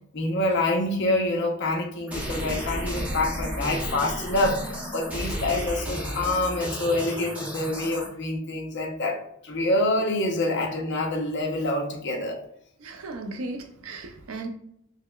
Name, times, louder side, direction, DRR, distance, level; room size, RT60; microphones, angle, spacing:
voice 1, 0.1-12.4, left 2 dB, 60° left, 0.7 m, -26 dB
sound 1, 2.1-8.1, equal, 5° right, 0.7 m, -32 dB
voice 2, 12.8-14.5, right 2 dB, 80° right, 0.5 m, -36 dB
5.6 x 2.1 x 2.2 m
head